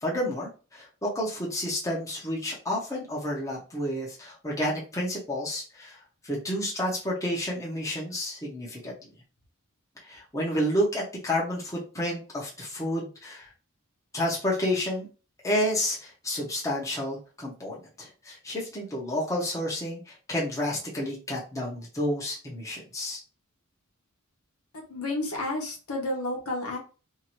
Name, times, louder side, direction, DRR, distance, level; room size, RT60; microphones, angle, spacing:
voice 1, 0.0-6.0 6.2-8.9 10.0-13.5 14.1-15.1 15.4-23.2, left 1 dB, 15° left, -4 dB, 0.8 m, -30 dB
voice 2, 24.7-26.8, left 2 dB, 85° left, 0 dB, 1.0 m, -31 dB
2.7 x 2.5 x 2.9 m, 0.34 s
head